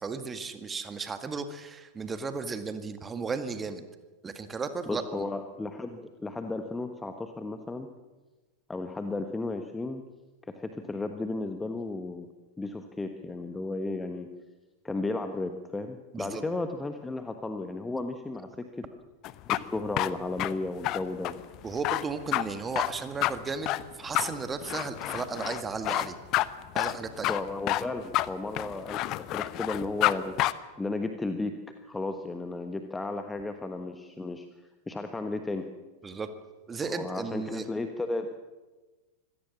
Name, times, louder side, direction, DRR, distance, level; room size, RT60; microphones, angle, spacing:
voice 1, 0.0-3.9 4.2-5.3 16.1-16.4 21.6-26.2 26.7-27.4 36.0-36.3 36.7-37.7, right 4 dB, 15° right, 9 dB, 1.8 m, -35 dB
voice 2, 4.9-7.9 8.7-10.0 10.5-12.3 12.6-14.3 14.8-18.9 19.5-21.3 27.3-29.0 29.3-30.4 30.8-31.6 31.9-34.5 34.9-35.7 36.8-38.3, left 2 dB, 10° left, 7 dB, 1.3 m, -34 dB
sound 1, 19.2-30.1 30.4-30.5, left 17 dB, 40° left, 0.8 m, -29 dB
25.0 x 17.0 x 7.3 m, 1.2 s
figure-of-eight pair, 90°, 0 cm